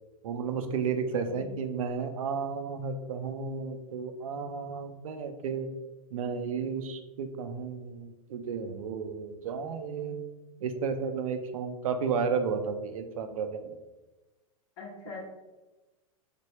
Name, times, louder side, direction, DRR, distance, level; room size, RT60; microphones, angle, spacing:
voice 1, 0.2-5.7 6.1-10.2 10.6-13.7, right 5 dB, 70° right, 8 dB, 0.4 m, -33 dB
voice 2, 1.1-1.5 14.8-15.3, left 2 dB, 50° left, -2 dB, 0.8 m, -43 dB
3.3 x 2.1 x 3.0 m, 1.1 s
hypercardioid pair, 100°, 19 cm